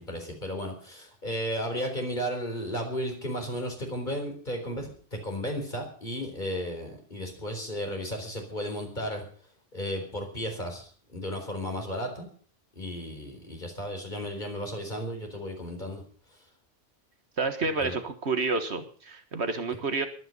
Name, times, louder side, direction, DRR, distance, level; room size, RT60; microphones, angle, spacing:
voice 1, 0.0-9.2 9.7-12.3 12.8-16.0 17.8-17.9, equal, 40° left, 3 dB, 4.3 m, -34 dB
voice 2, 17.4-20.1, right 3 dB, 65° right, 8 dB, 1.8 m, -29 dB
23.0 x 9.4 x 5.4 m, 0.43 s
omnidirectional pair, 1.2 m